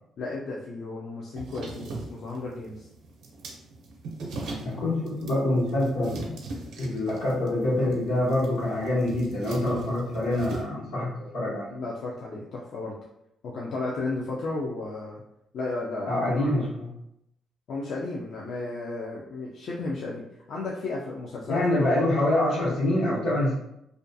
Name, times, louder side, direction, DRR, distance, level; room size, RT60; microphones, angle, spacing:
voice 1, 0.2-2.9 11.7-13.0 13.4-15.2 15.5-16.2 17.7-20.2 20.5-22.2, left 3 dB, 65° left, -3 dB, 0.4 m, -33 dB
sound 1, 1.3-10.6, right 2 dB, 80° right, 0.5 m, -40 dB
voice 2, 4.6-6.4 6.8-11.1 11.3-11.7 16.1-16.9 21.5-23.6, left 1 dB, 90° left, -6 dB, 1.1 m, -25 dB
2.4 x 2.3 x 2.6 m, 0.81 s
cardioid pair, 90°, 0 cm